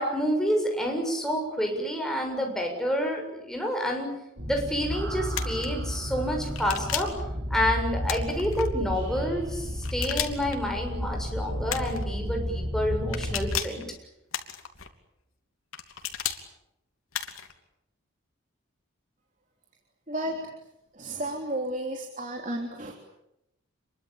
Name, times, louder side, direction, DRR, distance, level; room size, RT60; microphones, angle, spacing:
voice 1, 0.0-4.1 4.4-7.2 7.5-13.8, equal, ahead, 2 dB, 6.9 m, -28 dB
sound 1, 4.4-13.6, equal, 70° right, 6.5 m, -32 dB
sound 2, 5.3-5.7 6.5-7.2 8.0-8.7 9.8-10.6 11.7-12.1 13.1-13.8 14.3-14.9 15.7-16.4 17.1-17.5, left 9 dB, 80° left, 3.0 m, -33 dB
voice 2, 20.1-20.5 20.9-22.9, right 1 dB, 35° right, 1 dB, 3.3 m, -32 dB
28.0 x 23.0 x 8.9 m, 0.85 s
head